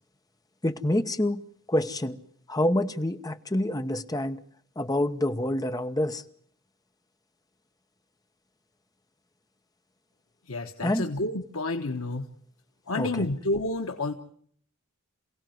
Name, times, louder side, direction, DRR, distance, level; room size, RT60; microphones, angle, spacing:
voice 1, 0.6-1.4 1.7-2.2 2.5-4.4 4.8-6.2 10.8-11.1 13.0-13.3, left 1 dB, 20° left, 9 dB, 1.1 m, -27 dB
voice 2, 10.5-12.2 12.9-14.1, left 2 dB, 80° left, 4 dB, 1.3 m, -30 dB
27.5 x 17.0 x 9.4 m, 0.63 s
head